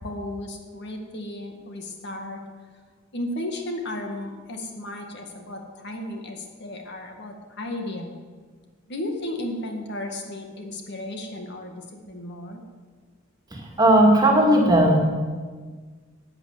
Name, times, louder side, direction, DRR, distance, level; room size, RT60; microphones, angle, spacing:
voice 1, 0.0-2.4 3.1-8.1 8.9-12.6, left 1 dB, 55° left, 3 dB, 1.8 m, -34 dB
voice 2, 13.5-15.0, right 1 dB, 20° right, 0 dB, 2.3 m, -17 dB
11.5 x 9.2 x 8.2 m, 1.5 s
head